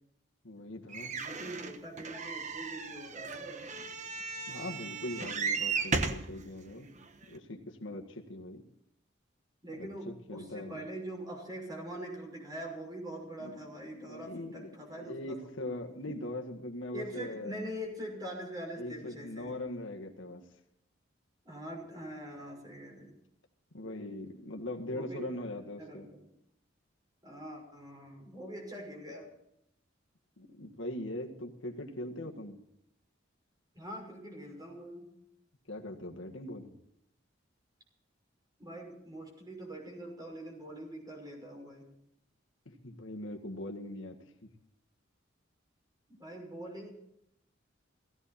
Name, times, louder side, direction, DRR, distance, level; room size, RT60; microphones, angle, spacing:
voice 1, 0.4-1.2 4.5-6.9 7.3-8.6 9.7-10.8 13.4-13.6 13.9-17.5 18.8-20.5 23.7-26.1 30.4-32.6 35.7-36.7 42.7-44.2, left 1 dB, 85° left, 3 dB, 1.9 m, -41 dB
sound 1, 0.9-6.3 7.0-7.1 7.4-7.5, right 4 dB, 40° right, 1.1 m, -35 dB
voice 2, 1.2-3.7 9.6-15.5 16.9-19.6 21.4-23.1 24.8-25.2 25.8-26.3 27.2-29.3 33.7-35.1 38.6-41.9 46.1-46.9, right 1 dB, 20° right, 0 dB, 6.0 m, -43 dB
17.0 x 16.0 x 4.3 m, 0.77 s
head